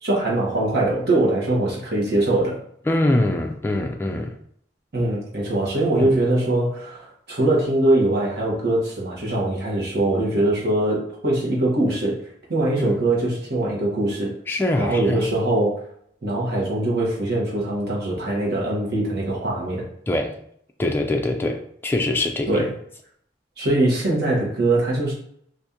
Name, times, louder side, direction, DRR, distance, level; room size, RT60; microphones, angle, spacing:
voice 1, 0.0-2.6 4.9-12.2 12.5-14.3 14.8-15.8 16.2-19.9 22.5-22.7 23.6-25.1, right 2 dB, 60° right, -4 dB, 1.1 m, -22 dB
voice 2, 2.9-4.3 6.0-6.1 12.8-13.0 14.5-15.2 20.1-20.4 20.8-22.6, left 1 dB, 10° left, 2 dB, 0.3 m, -23 dB
2.8 x 2.5 x 3.6 m, 0.67 s
head